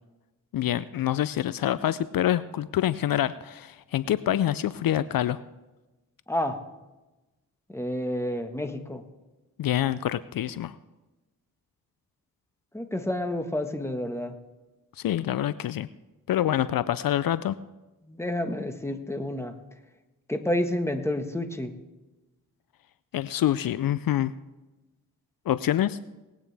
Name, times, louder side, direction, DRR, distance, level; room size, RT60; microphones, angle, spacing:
voice 1, 0.5-5.4 9.6-10.8 15.0-15.9 16.3-17.6 23.1-24.3 25.5-26.0, left 12 dB, 70° left, 16 dB, 0.5 m, -26 dB
voice 2, 6.3-6.6 7.7-9.0 12.7-14.4 18.0-19.6 20.3-21.7, left 1 dB, 5° left, 6 dB, 1.5 m, -29 dB
20.0 x 9.0 x 3.4 m, 1.1 s
cardioid pair, 45°, 36 cm